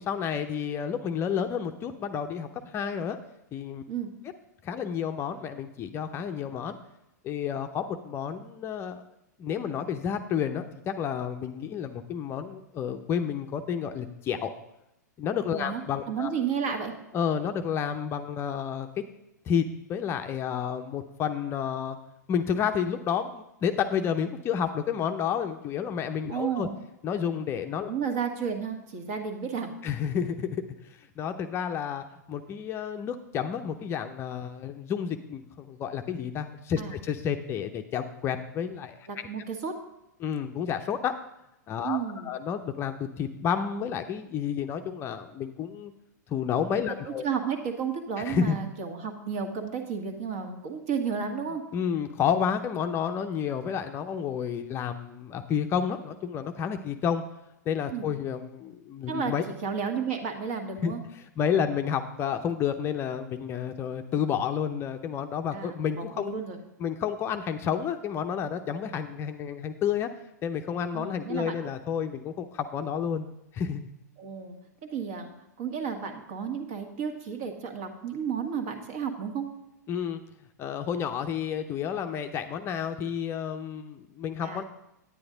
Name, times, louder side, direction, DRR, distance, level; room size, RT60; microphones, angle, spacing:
voice 1, 0.0-3.2 3.5-3.8 4.6-6.8 7.2-9.0 9.4-14.5 15.2-16.3 17.1-18.9 19.5-22.0 22.3-26.7 27.0-27.9 29.8-30.6 31.2-39.0 40.2-41.1 41.7-45.9 46.3-47.2 48.3-48.6 51.7-57.2 57.7-59.4 60.8-60.9 61.4-66.3 66.8-70.1 70.4-73.3 73.5-73.9 79.9-80.2 80.6-84.6, left 8 dB, 25° left, 7 dB, 0.6 m, -30 dB
voice 2, 15.5-16.9 26.3-26.8 27.9-29.7 36.8-37.0 39.1-39.7 41.8-42.3 46.9-51.6 57.9-58.1 59.1-59.3 59.6-61.0 65.5-66.6 70.9-71.6 74.2-74.6 74.9-75.3 75.6-79.5 84.4-84.6, right 6 dB, 45° right, 4 dB, 1.7 m, -32 dB
9.7 x 9.6 x 3.8 m, 0.88 s
figure-of-eight pair, 100°, 10 cm